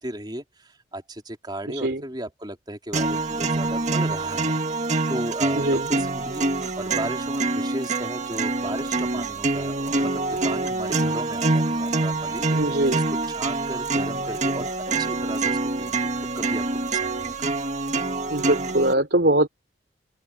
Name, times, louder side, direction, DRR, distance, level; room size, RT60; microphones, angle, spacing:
voice 1, 0.0-4.5 5.1-6.4 6.8-12.4 12.9-13.0 13.3-14.7 15.0-16.0 16.3-17.5, right 1 dB, 25° right, 3.4 m, -35 dB
voice 2, 1.7-2.0 5.5-5.9 12.5-13.0 18.3-19.5, right 1 dB, 60° right, 3.2 m, -22 dB
sound 1, 2.9-18.9, right 3 dB, 40° right, 1.8 m, -25 dB
open air
head